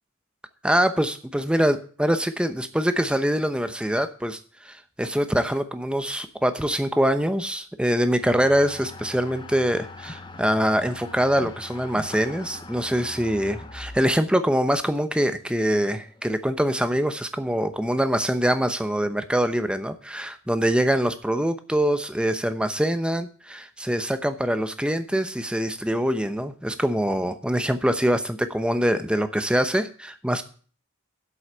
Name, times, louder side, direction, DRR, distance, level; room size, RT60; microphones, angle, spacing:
voice 1, 0.6-4.4 4.6-30.4, equal, 5° right, 10 dB, 0.8 m, -24 dB
sound 1, 8.2-16.3, left 2 dB, 20° left, 0.9 m, -42 dB
8.0 x 8.0 x 8.7 m, 0.42 s
head